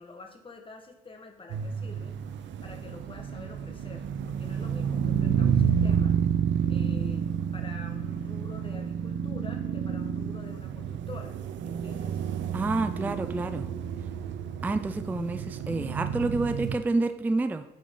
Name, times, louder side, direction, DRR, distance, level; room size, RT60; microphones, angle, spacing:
voice 1, 0.0-6.2 6.7-12.2, left 3 dB, 25° left, 3 dB, 1.2 m, -47 dB
sound 1, 1.5-16.8, right 8 dB, 70° right, 0.5 m, -30 dB
voice 2, 12.5-13.7 14.6-17.6, right 3 dB, 10° right, 9 dB, 0.3 m, -28 dB
8.5 x 3.8 x 3.7 m, 1.0 s
cardioid pair, 90°, 20 cm